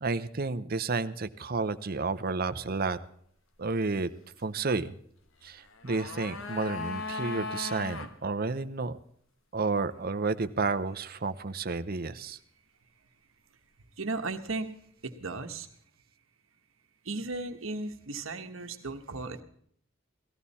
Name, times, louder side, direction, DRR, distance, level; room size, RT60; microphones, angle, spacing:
voice 1, 0.0-3.0 3.6-4.1 4.4-4.9 5.4-9.0 9.5-12.4, right 3 dB, 45° right, 12 dB, 0.8 m, -31 dB
sound 1, 5.5-8.1 8.4-8.5, left 3 dB, 70° left, 1.4 m, -37 dB
voice 2, 14.0-14.7 15.0-15.7 17.0-19.4, right 3 dB, 75° right, 6 dB, 1.3 m, -35 dB
18.0 x 14.5 x 4.2 m, 0.63 s
head